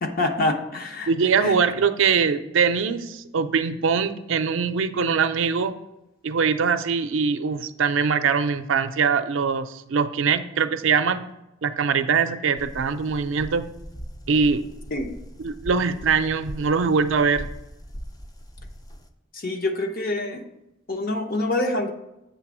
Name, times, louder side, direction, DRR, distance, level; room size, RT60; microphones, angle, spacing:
voice 1, 0.0-1.1 1.4-1.6 14.9-15.1 19.3-20.4 20.9-21.9, left 2 dB, 45° left, 5 dB, 0.7 m, -26 dB
voice 2, 1.1-5.7 6.2-11.2 11.6-13.7 14.3-14.6 15.4-17.5, right 5 dB, 70° right, 10 dB, 0.5 m, -22 dB
sound 1, 12.6-19.1, equal, 20° left, 0.4 m, -40 dB
8.2 x 3.4 x 6.1 m, 0.90 s
head